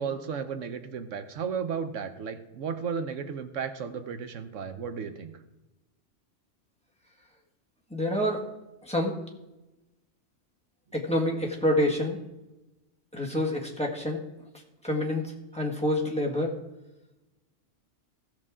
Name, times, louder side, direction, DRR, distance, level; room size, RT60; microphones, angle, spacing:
voice 1, 0.0-5.3, right 6 dB, 80° right, 10 dB, 1.2 m, -34 dB
voice 2, 7.9-8.4 8.9-9.1 10.9-12.2 13.1-14.2 14.8-15.2 15.5-16.5, left 1 dB, 5° left, -1 dB, 1.6 m, -27 dB
16.5 x 6.7 x 3.7 m, 1.0 s
omnidirectional pair, 1.3 m